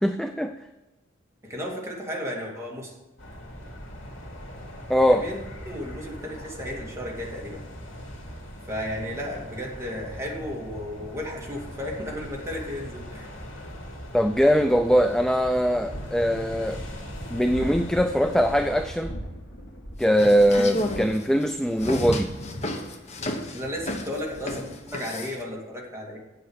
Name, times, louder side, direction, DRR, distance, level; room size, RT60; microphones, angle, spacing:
voice 1, 0.0-0.5 4.9-5.2 14.1-16.8 17.3-19.2 20.0-22.3, equal, 5° left, 8 dB, 0.3 m, -21 dB
voice 2, 1.4-2.9 5.1-7.6 8.7-13.3 23.5-26.2, left 1 dB, 15° right, -3 dB, 2.4 m, -34 dB
sound 1, 3.2-18.9, equal, 80° left, 2.7 m, -40 dB
sound 2, 15.9-24.9, equal, 65° left, 2.1 m, -41 dB
sound 3, 20.0-25.4, left 1 dB, 35° left, 1.2 m, -32 dB
8.3 x 7.9 x 7.2 m, 1.1 s
head